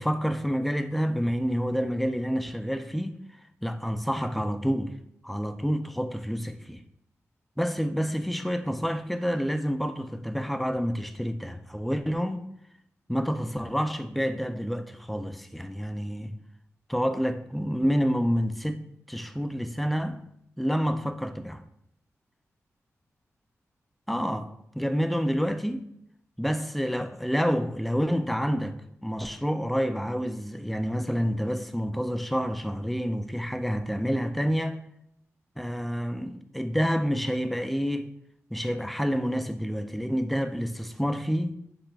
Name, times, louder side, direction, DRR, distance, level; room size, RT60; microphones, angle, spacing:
voice 1, 0.0-3.2 3.6-4.9 5.2-6.8 7.6-12.5 13.1-16.4 16.9-18.8 19.1-20.2 20.6-21.6 24.1-24.5 24.7-25.9 26.4-34.8 35.6-38.1 38.5-41.6, equal, ahead, 0.3 m, -28 dB
5.2 x 2.4 x 3.4 m
wide cardioid pair, 90°, 5 cm